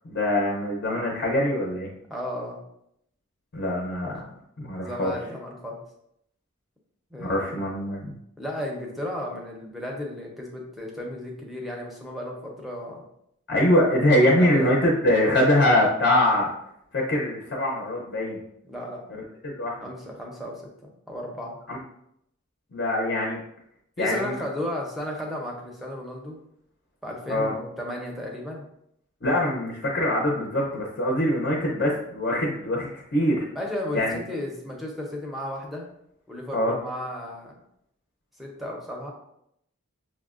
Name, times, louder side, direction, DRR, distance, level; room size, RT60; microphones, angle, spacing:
voice 1, 0.0-1.9 3.5-4.2 4.6-5.1 7.2-8.1 13.5-16.5 16.9-18.4 19.1-19.9 21.7-21.8 22.7-23.4 24.0-24.3 27.3-27.5 29.2-33.5 33.9-34.2 36.5-36.8, left 1 dB, 50° left, -2 dB, 0.6 m, -23 dB
voice 2, 2.1-2.6 4.8-5.8 7.1-7.5 8.4-13.0 14.4-14.7 18.6-19.0 19.8-20.6 21.1-21.6 24.0-26.4 27.0-28.7 33.5-35.9 36.3-37.5 38.4-39.1, left 1 dB, ahead, -1 dB, 0.6 m, -34 dB
6.1 x 2.1 x 2.4 m, 0.75 s
head